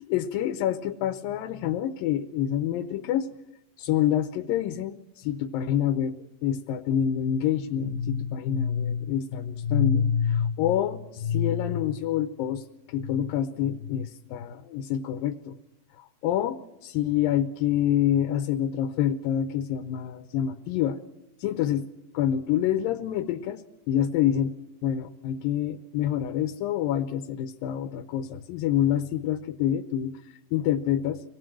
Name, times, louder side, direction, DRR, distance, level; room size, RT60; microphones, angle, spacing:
voice 1, 0.0-3.3 3.8-6.2 6.4-12.6 12.9-15.6 16.2-21.0 21.4-21.9 22.1-24.5 24.8-30.2 30.5-31.2, left 10 dB, 85° left, 8 dB, 2.6 m, -27 dB
25.0 x 18.5 x 6.2 m, 0.95 s
omnidirectional pair, 4.0 m